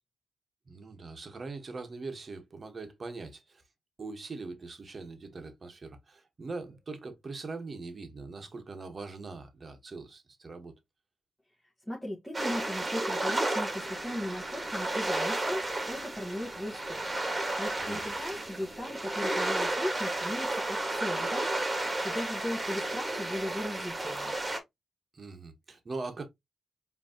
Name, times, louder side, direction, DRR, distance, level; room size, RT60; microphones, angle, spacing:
voice 1, 0.7-3.6 4.0-10.7 17.8-18.0 25.1-26.3, right 3 dB, 45° right, 1.4 m, -42 dB
voice 2, 11.9-17.0 17.3-21.8 22.0-24.3, left 1 dB, 5° left, 1.7 m, -37 dB
sound 1, 12.3-24.6, right 2 dB, 30° right, 1.8 m, -32 dB
5.1 x 3.2 x 2.9 m
cardioid pair, 60°, 0 cm